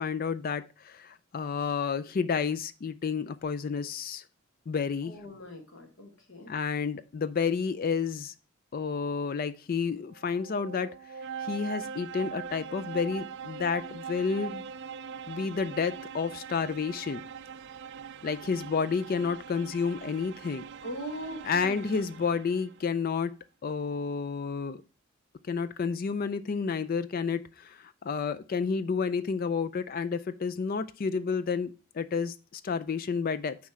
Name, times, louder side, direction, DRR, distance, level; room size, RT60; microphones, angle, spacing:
voice 1, 0.0-4.2 4.7-5.1 6.5-8.3 8.7-10.9 11.5-14.6 15.3-17.2 18.2-20.6 21.4-23.3 23.6-24.8 25.5-33.6, left 5 dB, 40° left, 13 dB, 0.3 m, -30 dB
voice 2, 5.0-6.5 20.8-22.1, equal, 60° left, 3 dB, 1.5 m, -41 dB
sound 1, 10.1-22.9, right 7 dB, 50° right, 0.3 m, -42 dB
9.4 x 3.2 x 4.7 m, 0.33 s
head